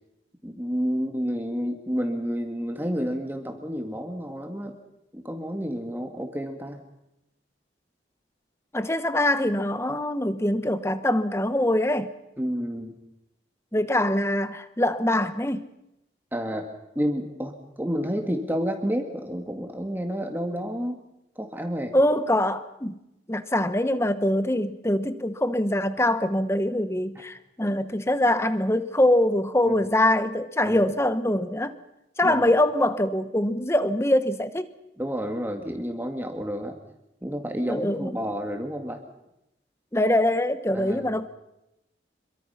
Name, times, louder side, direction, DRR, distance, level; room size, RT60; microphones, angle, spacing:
voice 1, 0.4-4.8 5.1-6.8 12.4-13.0 16.3-16.7 17.0-21.0 21.4-21.9 27.6-27.7 29.6-29.7 30.7-30.8 32.2-32.5 35.0-36.8 37.2-39.0 40.7-41.1, equal, 10° right, 4 dB, 2.0 m, -30 dB
voice 2, 8.7-12.1 13.7-15.7 21.9-22.9 23.3-31.8 32.2-34.7 37.7-38.2 39.9-41.3, left 1 dB, 15° left, 12 dB, 1.1 m, -23 dB
26.5 x 23.5 x 5.8 m, 0.88 s
head